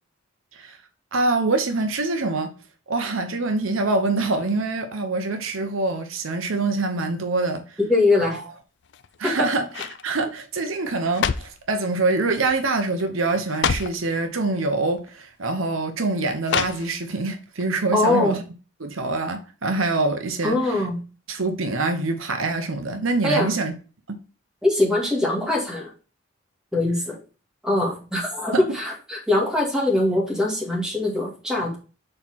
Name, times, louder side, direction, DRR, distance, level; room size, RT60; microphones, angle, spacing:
voice 1, 1.1-2.5 2.9-7.8 9.2-9.7 10.0-18.4 18.8-20.5 21.3-23.7 24.1-24.2 28.5-28.6, right 3 dB, 70° right, 0.9 m, -25 dB
voice 2, 7.9-8.4 9.2-9.5 17.9-18.4 20.4-21.0 23.2-23.5 24.6-25.9 26.7-27.2 27.6-31.8, left 2 dB, 5° right, 2.0 m, -22 dB
sound 1, 8.8-9.3 9.7-10.0 10.8-11.7 12.5-12.7 13.0-13.1 13.5-14.0 15.0-15.1 16.4-17.2 17.6-17.7, left 7 dB, 55° left, 0.4 m, -27 dB
6.6 x 4.4 x 4.2 m
head